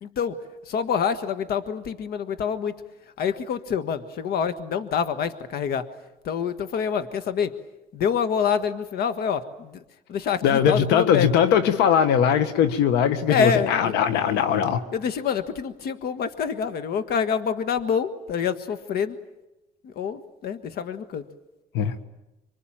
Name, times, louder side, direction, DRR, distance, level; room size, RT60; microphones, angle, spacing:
voice 1, 0.0-0.4 0.6-2.8 3.2-5.9 6.2-7.5 7.9-9.8 10.1-11.3 13.3-14.0 14.9-19.2 19.8-21.2, left 7 dB, 65° left, 11 dB, 1.5 m, -26 dB
voice 2, 10.4-14.8 21.7-21.9, left 8 dB, 85° left, 11 dB, 1.5 m, -20 dB
25.0 x 25.0 x 8.9 m, 0.95 s
cardioid pair, 110°, 17 cm